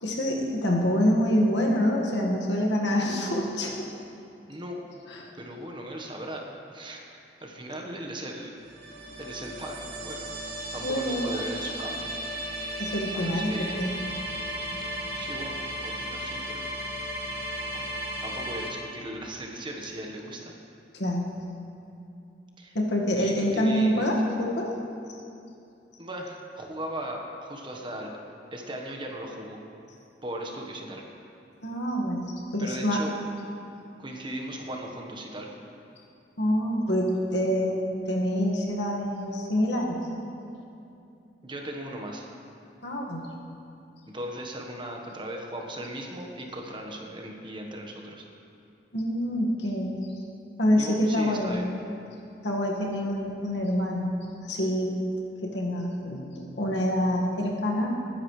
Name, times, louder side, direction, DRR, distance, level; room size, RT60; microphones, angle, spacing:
voice 1, 0.0-3.9 5.1-5.3 10.8-11.3 12.8-14.0 20.9-21.3 22.8-24.7 31.6-33.0 36.4-40.0 42.8-43.3 48.9-50.1 50.6-51.6 52.4-54.1 54.4-55.0 55.4-57.9, equal, 85° left, -1 dB, 1.8 m, -26 dB
voice 2, 4.5-4.8 5.3-7.0 7.4-8.5 9.2-10.3 10.7-12.1 13.1-13.8 14.8-14.9 15.2-16.7 17.7-17.9 18.2-20.4 22.6-22.8 23.2-24.0 26.0-28.1 28.5-29.6 30.2-31.0 32.6-33.1 34.0-35.5 41.4-42.3 44.1-48.2 50.8-51.6, right 1 dB, 30° right, 1 dB, 1.3 m, -38 dB
sound 1, 8.6-18.7, right 1 dB, 70° right, 2.6 m, -35 dB
20.5 x 10.5 x 3.3 m, 2.7 s
head